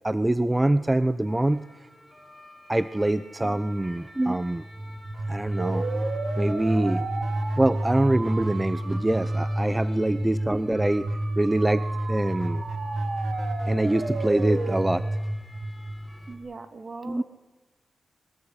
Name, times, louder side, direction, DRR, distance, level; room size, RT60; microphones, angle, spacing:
voice 1, 0.0-1.6 2.7-4.6 5.3-5.9 6.4-7.0 7.6-11.1 11.4-12.6 13.7-15.0 17.0-17.2, right 1 dB, 15° right, 13 dB, 0.9 m, -24 dB
sound 1, 1.3-16.3, equal, ahead, 7.0 m, -50 dB
sound 2, 4.6-16.4, right 1 dB, 65° right, 3.6 m, -29 dB
voice 2, 16.3-17.2, right 3 dB, 45° right, 9 dB, 2.7 m, -41 dB
22.5 x 21.0 x 9.9 m, 1.2 s
cardioid pair, 65°, 0 cm